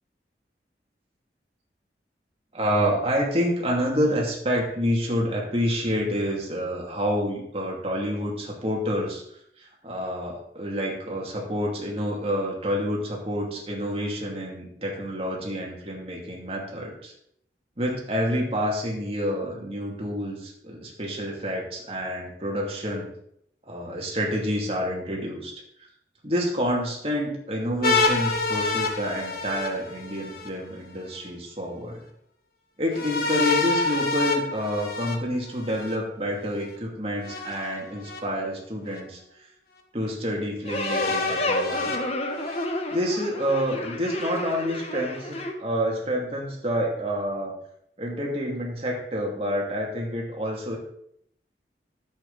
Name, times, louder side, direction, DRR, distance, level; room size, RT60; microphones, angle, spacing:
voice 1, 2.5-9.2 9.6-17.1 17.8-23.1 23.7-25.5 26.2-32.0 32.8-39.2 39.9-42.0 42.9-47.5 48.0-50.8, equal, 35° right, -2 dB, 2.6 m, -28 dB
sound 1, 27.8-30.5 32.9-36.0 37.2-38.2 38.9-39.0 40.7-42.7, left 3 dB, 55° left, 1.5 m, -27 dB
sound 2, 40.7-45.5, left 1 dB, 35° left, 1.2 m, -31 dB
11.0 x 8.1 x 4.1 m, 0.71 s
head